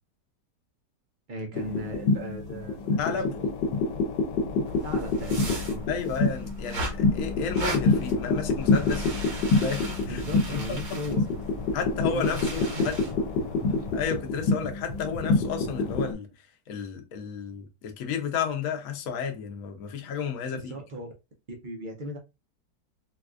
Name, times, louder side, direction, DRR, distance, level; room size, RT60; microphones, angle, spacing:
voice 1, 1.3-3.5 4.8-5.8 10.1-11.3 12.1-12.5 12.7-12.9 13.6-13.9 20.7-21.1 21.6-22.2, equal, 65° right, 0.4 m, -37 dB
sound 1, 1.5-16.1, left 3 dB, 85° left, 1.3 m, -27 dB
voice 2, 3.0-3.3 5.9-9.1 9.6-10.2 10.5-11.0 11.7-13.0 13.9-16.3 16.7-20.7, left 6 dB, 60° left, 1.0 m, -32 dB
sound 2, 4.7-14.1, equal, 90° right, 2.1 m, -37 dB
4.0 x 2.4 x 2.4 m
omnidirectional pair, 1.9 m